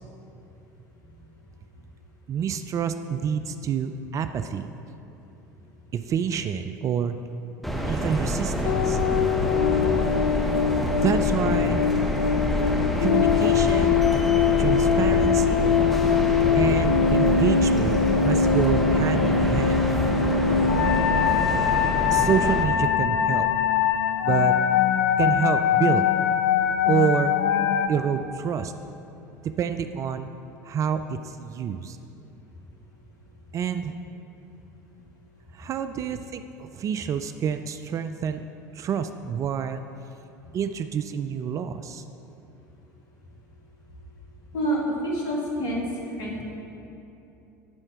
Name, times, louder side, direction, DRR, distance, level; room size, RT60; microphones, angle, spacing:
voice 1, 2.3-4.7 5.9-7.2 7.9-9.0 11.0-11.8 13.0-14.0 14.6-15.8 16.5-19.9 22.1-23.5 24.2-24.5 25.2-26.1 26.9-27.4 27.9-28.7 29.4-30.3 30.6-32.0 33.5-34.0 35.5-38.4 38.7-39.8 40.5-42.0, right 7 dB, 35° right, 9 dB, 0.3 m, -27 dB
sound 1, 7.6-22.6, equal, ahead, 1.1 m, -27 dB
sound 2, 8.6-27.9, left 7 dB, 65° left, 0.4 m, -22 dB
voice 2, 44.5-45.9 46.2-46.4, right 1 dB, 50° left, -2 dB, 2.0 m, -27 dB
10.5 x 4.4 x 5.8 m, 2.9 s
figure-of-eight pair, 70°, 10 cm